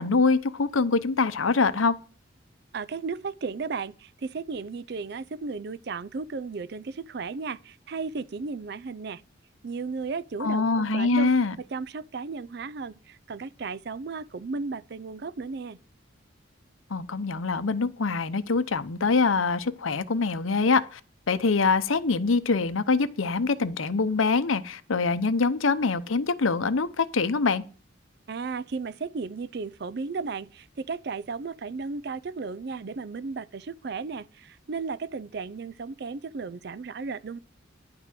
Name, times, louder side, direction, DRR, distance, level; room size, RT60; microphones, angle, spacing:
voice 1, 0.0-1.9 10.4-11.6 16.9-21.0 21.3-27.6, left 4 dB, 90° left, 0.8 m, -24 dB
voice 2, 2.7-9.2 9.6-11.3 11.6-15.8 28.3-37.4, right 4 dB, 55° right, 0.4 m, -34 dB
10.5 x 5.9 x 7.5 m
head